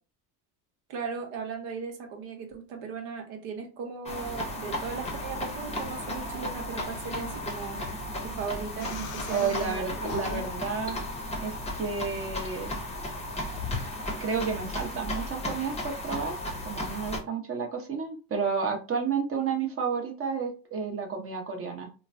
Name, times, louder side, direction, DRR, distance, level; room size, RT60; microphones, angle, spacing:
voice 1, 0.9-7.9 8.2-10.5, right 5 dB, 75° right, 1.0 m, -37 dB
sound 1, 4.0-17.2, left 1 dB, 15° left, 0.7 m, -35 dB
sound 2, 8.8-13.9, left 6 dB, 55° left, 0.6 m, -41 dB
voice 2, 9.3-11.0 11.4-12.7 14.2-16.4 16.6-21.9, right 5 dB, 30° right, 0.8 m, -31 dB
3.1 x 2.1 x 2.5 m
supercardioid pair, 110°, 45 cm